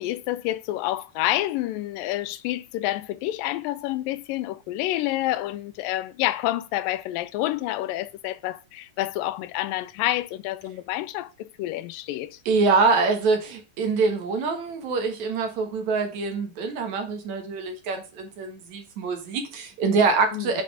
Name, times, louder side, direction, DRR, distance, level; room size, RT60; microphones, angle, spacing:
voice 1, 0.0-12.4 20.3-20.6, left 15 dB, 90° left, 2.3 m, -28 dB
voice 2, 12.5-20.6, right 4 dB, 65° right, 2.5 m, -24 dB
7.2 x 4.3 x 4.7 m
omnidirectional pair, 3.9 m